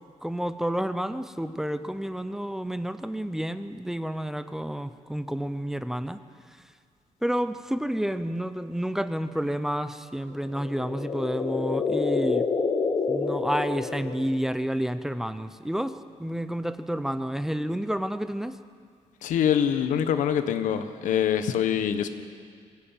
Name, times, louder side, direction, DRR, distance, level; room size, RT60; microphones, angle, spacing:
voice 1, 0.2-6.2 7.2-12.4 13.1-18.6, equal, 5° right, 12 dB, 0.6 m, -30 dB
sound 1, 10.4-14.6, left 4 dB, 35° left, 1.7 m, -28 dB
voice 2, 19.2-22.1, left 9 dB, 90° left, 9 dB, 1.3 m, -24 dB
22.5 x 16.0 x 9.0 m, 2.1 s
cardioid pair, 165°, 13 cm